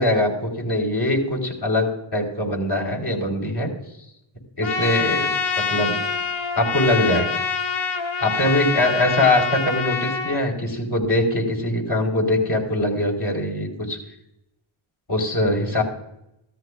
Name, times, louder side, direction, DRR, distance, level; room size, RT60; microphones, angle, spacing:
voice 1, 0.0-3.7 4.6-5.9 6.5-7.4 8.2-14.0 15.1-15.8, left 1 dB, 50° left, 0 dB, 4.4 m, -22 dB
Trumpet, 4.6-10.4, left 5 dB, 70° left, 1.1 m, -25 dB
16.0 x 13.5 x 2.5 m, 0.82 s
cardioid pair, 45°, 49 cm